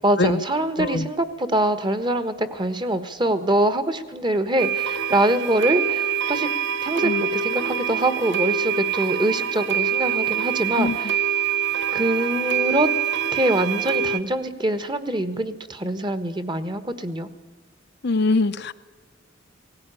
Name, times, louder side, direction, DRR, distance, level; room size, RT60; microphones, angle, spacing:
voice 1, 0.0-6.5 6.8-11.1 11.9-12.9 13.3-17.3, right 1 dB, 25° right, 11 dB, 1.3 m, -24 dB
voice 2, 0.8-1.1 7.0-7.3 10.8-11.0 18.0-18.7, left 3 dB, 60° left, 11 dB, 0.7 m, -23 dB
sound 1, 4.6-14.2, right 7 dB, 60° right, 0.7 m, -25 dB
18.0 x 16.0 x 9.8 m, 1.4 s
head